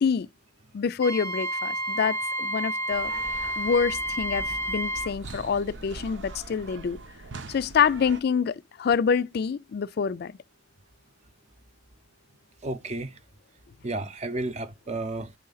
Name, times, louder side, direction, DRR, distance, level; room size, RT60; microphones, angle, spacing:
voice 1, 0.7-3.1 3.6-7.0 7.5-10.3, left 6 dB, 60° left, 0.4 m, -26 dB
Wind instrument woodwind instrument, 1.0-5.1, right 1 dB, 15° left, 0.6 m, -30 dB
sound 1, 2.9-8.2, right 2 dB, 85° right, 0.8 m, -42 dB
voice 2, 12.6-13.2 13.8-15.3, right 2 dB, 40° right, 0.7 m, -32 dB
8.2 x 3.8 x 3.9 m
head